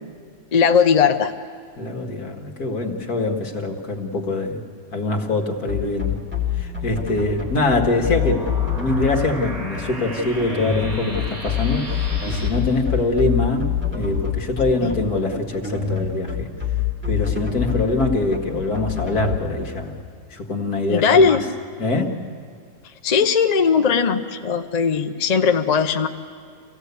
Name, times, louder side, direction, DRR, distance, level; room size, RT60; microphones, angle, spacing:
voice 1, 0.5-1.3 14.8-15.0 20.9-21.4 23.0-26.1, left 6 dB, 40° left, 6 dB, 0.6 m, -18 dB
voice 2, 1.8-4.6 4.9-6.2 6.6-16.5 17.1-19.9 20.3-21.4 21.8-22.2, left 2 dB, 65° left, 3 dB, 2.2 m, -24 dB
sound 1, 5.7-19.4, left 8 dB, 5° right, 2.7 m, -25 dB
sound 2, 7.5-12.5, right 1 dB, 60° right, 3.4 m, -35 dB
26.0 x 16.5 x 8.2 m, 2.1 s
omnidirectional pair, 1.7 m